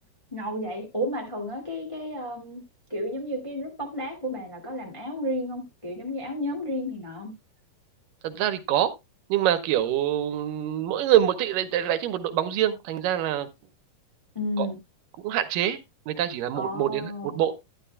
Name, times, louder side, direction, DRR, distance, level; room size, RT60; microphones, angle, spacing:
voice 1, 0.3-2.6 2.9-7.3 14.3-14.8 16.5-17.4, equal, 10° left, 1.6 m, -32 dB
voice 2, 8.2-8.9 9.3-13.5 14.6-14.7 15.2-15.8 16.1-17.5, right 11 dB, 85° right, 2.5 m, -25 dB
11.5 x 11.0 x 2.2 m
omnidirectional pair, 3.8 m